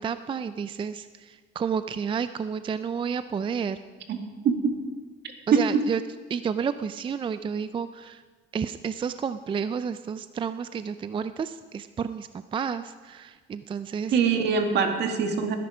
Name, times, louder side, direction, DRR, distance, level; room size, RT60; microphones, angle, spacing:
voice 1, 0.0-3.8 5.5-6.0 6.3-8.2 8.5-14.2, right 6 dB, 25° right, 12 dB, 0.4 m, -31 dB
voice 2, 4.4-4.8 5.5-5.7 14.1-15.6, right 6 dB, 65° right, 4 dB, 2.1 m, -23 dB
19.0 x 10.5 x 5.0 m, 1.5 s
cardioid pair, 110°, 19 cm